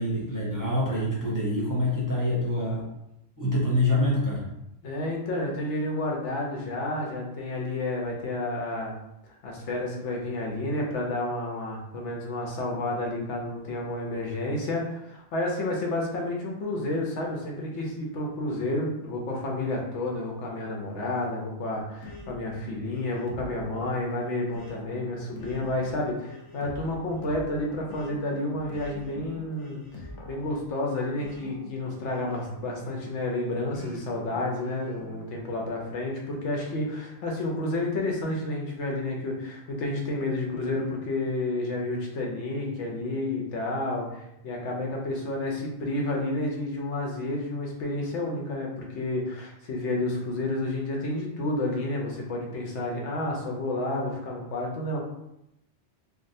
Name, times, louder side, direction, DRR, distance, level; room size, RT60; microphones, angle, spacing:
voice 1, 0.0-2.8 3.4-4.5, left 1 dB, 20° right, -6 dB, 0.7 m, -26 dB
voice 2, 4.8-8.9 9.4-55.0, left 2 dB, 90° left, -1 dB, 1.0 m, -30 dB
sound 1, 22.0-33.1 33.7-35.3, left 2 dB, 55° left, 0.3 m, -45 dB
3.5 x 2.3 x 2.6 m, 0.84 s
omnidirectional pair, 1.2 m